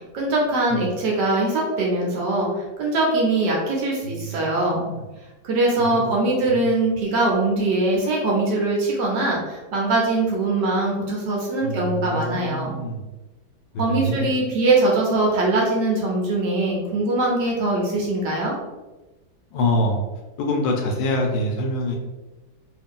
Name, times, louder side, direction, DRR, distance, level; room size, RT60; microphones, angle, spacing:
voice 1, 0.1-4.8 5.4-12.7 13.8-18.5, right 2 dB, 65° right, -3 dB, 1.3 m, -22 dB
voice 2, 4.0-5.1 5.8-6.1 6.5-6.7 11.6-13.0 13.7-14.3 19.5-20.0 20.4-22.0, left 1 dB, 75° left, 1 dB, 1.2 m, -26 dB
3.2 x 2.7 x 3.6 m, 1.1 s
omnidirectional pair, 2.2 m